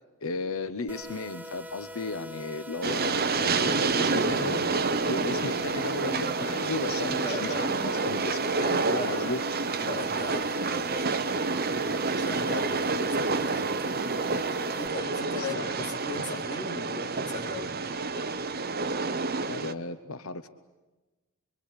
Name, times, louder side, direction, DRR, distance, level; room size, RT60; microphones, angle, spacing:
voice 1, 0.2-4.7 5.1-9.4 15.4-15.7 19.5-20.5, left 3 dB, 65° left, 10 dB, 1.0 m, -35 dB
sound 1, 0.9-14.9, left 1 dB, 10° right, 0.9 m, -42 dB
Train, 2.8-19.7, right 4 dB, 45° right, 1.0 m, -28 dB
voice 2, 7.0-7.8 8.9-9.4 9.8-11.0 12.2-13.7 14.7-17.7, left 2 dB, 20° left, 0 dB, 3.5 m, -38 dB
25.0 x 24.0 x 8.5 m, 1.2 s
head